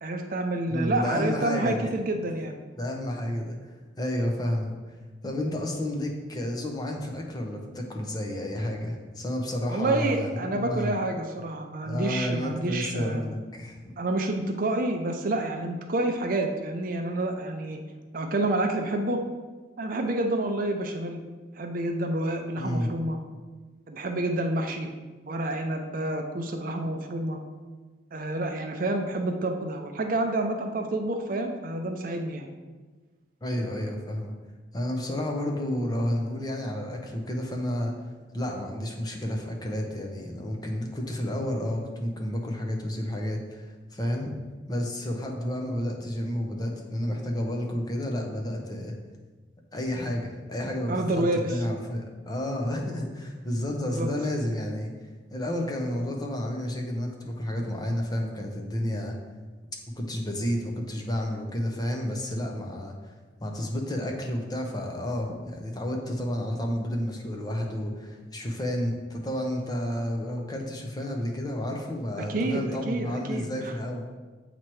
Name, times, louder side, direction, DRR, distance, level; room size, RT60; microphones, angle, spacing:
voice 1, 0.0-2.6 9.7-13.2 14.0-17.8 18.1-19.2 19.8-21.2 21.5-23.2 23.9-24.9 25.3-27.4 28.1-32.5 50.9-51.6 53.8-54.1 72.2-73.7, right 2 dB, 50° right, 4 dB, 0.5 m, -28 dB
voice 2, 0.7-1.9 2.8-4.7 5.2-11.0 11.8-13.9 22.6-22.9 33.4-34.3 34.7-37.9 38.3-44.3 44.7-48.9 49.7-54.9 55.3-59.1 60.0-63.1 63.4-74.0, left 1 dB, 20° left, 1 dB, 0.7 m, -31 dB
7.4 x 3.0 x 4.6 m, 1.3 s
head